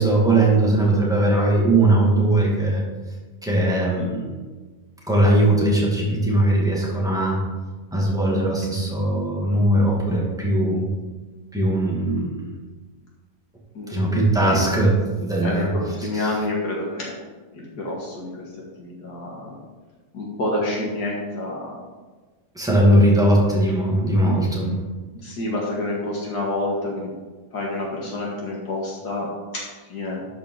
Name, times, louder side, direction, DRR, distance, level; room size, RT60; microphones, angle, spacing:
voice 1, 0.0-2.8 3.4-4.3 5.1-7.4 7.9-10.9 11.5-12.5 13.9-15.7 16.1-16.3 22.5-24.7, right 1 dB, ahead, -4 dB, 2.2 m, -19 dB
voice 2, 13.7-14.7 15.4-17.1 17.5-18.5 18.8-19.6 20.1-21.8 25.1-27.1 27.5-29.3 29.5-30.2, left 2 dB, 70° left, -3 dB, 2.1 m, -28 dB
12.0 x 5.2 x 4.9 m, 1.3 s
omnidirectional pair, 1.8 m